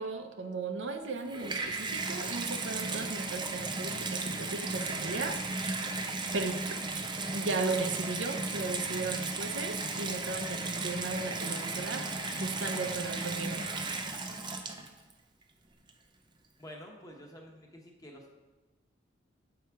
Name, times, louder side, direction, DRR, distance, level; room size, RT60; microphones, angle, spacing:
voice 1, 0.0-5.4 6.3-6.8 7.3-12.1 12.4-13.7, right 3 dB, 80° right, 6 dB, 0.7 m, -36 dB
Water tap faucet / Bathtub (filling or washing), 1.0-15.1 15.9-16.0, right 3 dB, 25° right, 0.6 m, -35 dB
voice 2, 12.0-12.8 13.9-14.4 16.6-18.3, equal, 20° left, 0 dB, 1.1 m, -50 dB
7.9 x 4.8 x 4.6 m, 1.2 s
head